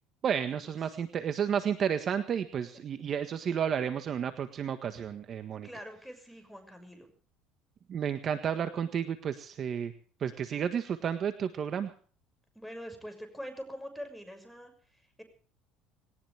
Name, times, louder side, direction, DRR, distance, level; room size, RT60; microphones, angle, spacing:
voice 1, 0.2-5.7 7.9-9.9 10.2-11.9, right 8 dB, 40° right, 9 dB, 1.6 m, -31 dB
voice 2, 5.5-7.1 12.5-15.2, equal, ahead, 6 dB, 6.4 m, -44 dB
21.0 x 19.0 x 3.5 m, 0.43 s
cardioid pair, 125°, 0 cm